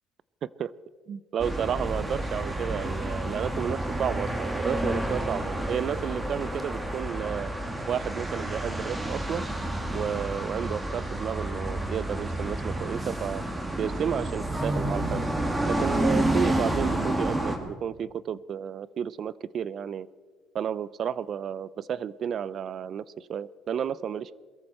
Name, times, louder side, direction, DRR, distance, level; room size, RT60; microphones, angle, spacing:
voice 1, 0.4-0.7 1.1-7.5 7.9-9.5 9.9-13.4 13.7-15.2 15.6-20.1 20.5-24.3, right 8 dB, 50° right, 20 dB, 0.5 m, -32 dB
sound 1, 1.4-17.6, right 1 dB, 15° right, 2.3 m, -30 dB
22.0 x 14.0 x 4.4 m, 1.5 s
cardioid pair, 105°, 0 cm